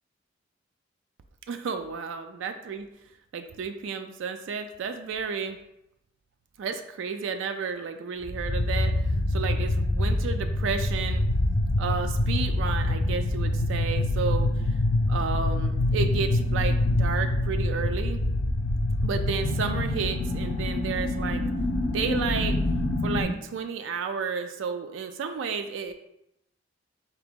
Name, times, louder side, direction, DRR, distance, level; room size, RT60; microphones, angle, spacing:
voice 1, 1.5-2.9 3.3-5.6 6.6-8.9 9.3-11.2 11.8-14.7 15.1-18.2 19.0-21.4 21.8-22.6 23.0-25.9, right 5 dB, 70° right, 7 dB, 0.3 m, -32 dB
sound 1, 8.2-23.2, left 1 dB, 65° left, 0.6 m, -26 dB
3.8 x 2.9 x 3.5 m, 0.83 s
head